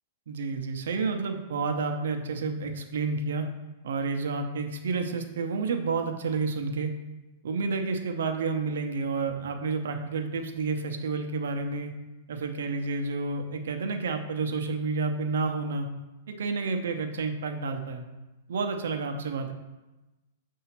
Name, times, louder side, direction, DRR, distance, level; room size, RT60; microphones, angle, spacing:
voice 1, 0.3-3.5 3.8-6.9 7.4-11.9 12.3-15.9 16.3-18.1 18.5-19.5, right 4 dB, 85° right, 5 dB, 0.8 m, -30 dB
6.9 x 2.8 x 5.8 m, 1.1 s
supercardioid pair, 165°, 0 cm